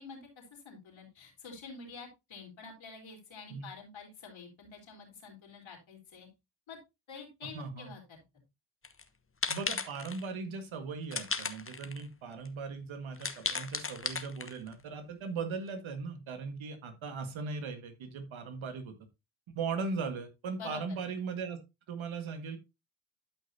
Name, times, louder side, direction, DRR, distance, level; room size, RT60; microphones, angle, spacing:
voice 1, 0.0-6.3 6.7-6.8 7.1-8.0 20.6-21.0, left 4 dB, 70° left, 1 dB, 3.9 m, -48 dB
voice 2, 7.4-7.9 9.5-18.9 19.5-21.6 21.9-22.6, right 4 dB, 75° right, 7 dB, 1.9 m, -38 dB
sound 1, 8.8-9.0 9.4-10.2 11.1-12.0 12.4-12.5 13.2-14.7, left 4 dB, 25° left, 1.2 m, -35 dB
12.5 x 5.5 x 2.8 m, 0.24 s
supercardioid pair, 45°, 48 cm